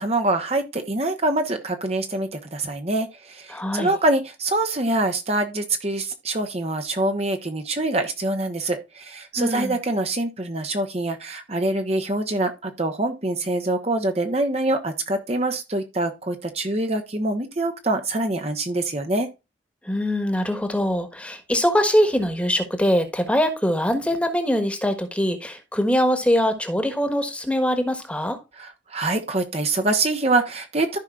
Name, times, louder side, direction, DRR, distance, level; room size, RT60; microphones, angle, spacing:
voice 1, 0.0-19.3 28.6-31.0, right 2 dB, 35° right, 1.0 m, -25 dB
voice 2, 3.5-3.9 9.4-9.7 19.8-28.4, equal, 5° left, 1.4 m, -22 dB
14.5 x 5.4 x 2.4 m
head